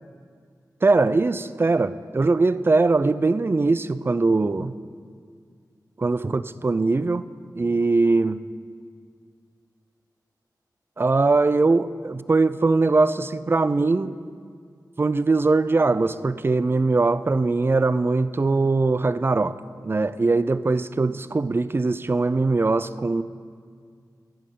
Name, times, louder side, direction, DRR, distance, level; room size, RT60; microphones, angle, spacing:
voice 1, 0.8-4.8 6.0-7.2 7.6-8.4 11.0-14.2 15.0-19.6 19.8-23.2, right 3 dB, 30° right, 0.3 m, -21 dB
15.0 x 5.4 x 5.4 m
cardioid pair, 50°, 7 cm